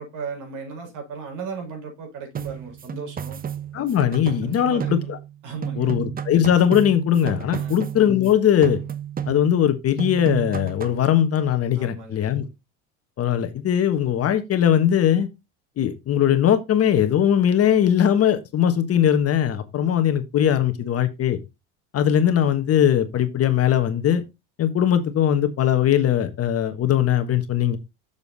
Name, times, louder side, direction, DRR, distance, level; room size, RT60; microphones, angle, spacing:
voice 1, 0.0-3.4 4.1-5.0 5.4-5.9 7.5-7.8 11.8-12.5, right 5 dB, 60° right, 5.3 m, -36 dB
sound 1, 2.3-5.4 5.6-8.3 8.6-9.7 10.0-11.1, right 9 dB, 25° right, 0.8 m, -32 dB
voice 2, 3.7-5.2 5.8-8.8 9.3-12.5 13.2-15.3 15.8-21.4 21.9-24.2 24.6-27.8, left 10 dB, 45° left, 1.4 m, -20 dB
7.1 x 6.9 x 4.1 m
supercardioid pair, 100°, 34 cm